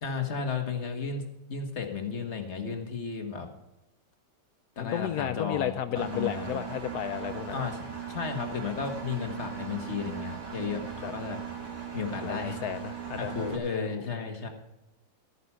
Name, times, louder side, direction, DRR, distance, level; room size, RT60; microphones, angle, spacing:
voice 1, 0.0-3.5 4.8-6.6 7.5-11.4 11.9-12.6 13.2-14.5, left 5 dB, 40° left, 4 dB, 1.7 m, -34 dB
voice 2, 4.8-7.6 11.0-11.1 12.2-13.9, left 10 dB, 70° left, 12 dB, 1.0 m, -33 dB
Engine, 6.0-13.6, right 7 dB, 45° right, 2.4 m, -39 dB
13.5 x 9.3 x 5.7 m, 0.93 s
omnidirectional pair, 2.0 m